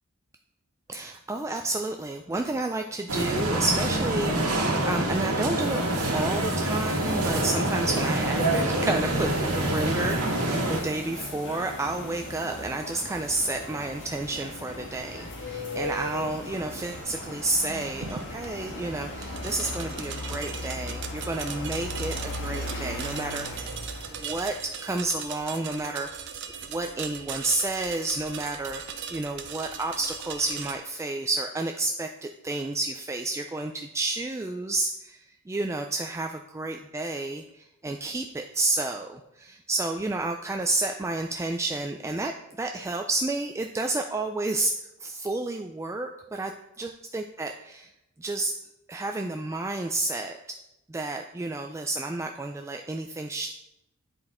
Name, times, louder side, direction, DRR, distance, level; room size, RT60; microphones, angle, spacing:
voice 1, 0.9-5.8 6.1-23.7 24.2-26.1 26.6-28.8 29.1-44.7 45.0-46.5 46.8-47.9 48.2-48.5 48.9-50.4 50.9-53.5, right 2 dB, 15° right, 4 dB, 0.3 m, -30 dB
sound 1, 3.1-10.8, right 1 dB, 80° right, 1.8 m, -26 dB
sound 2, 5.6-24.7, left 1 dB, 60° left, 1.7 m, -37 dB
sound 3, 18.0-30.7, right 7 dB, 55° right, 0.7 m, -39 dB
10.0 x 4.0 x 4.3 m, 0.86 s
head